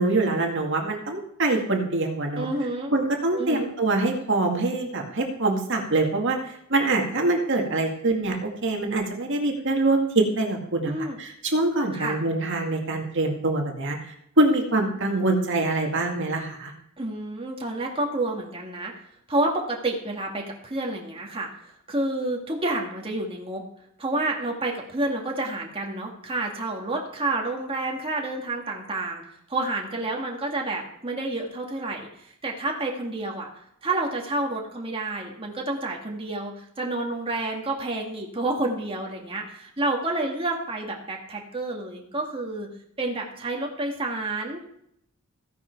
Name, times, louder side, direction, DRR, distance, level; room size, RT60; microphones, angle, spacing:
voice 1, 0.0-2.5 2.9-14.0 14.4-16.7, right 2 dB, 60° right, 2 dB, 2.1 m, -24 dB
voice 2, 2.4-2.9 3.3-3.7 10.8-11.2 11.9-12.2 17.0-18.9 19.3-23.6 24.0-29.2 29.5-42.7 43.0-44.6, right 2 dB, 25° right, 0 dB, 2.1 m, -29 dB
15.5 x 10.5 x 4.6 m, 0.73 s
head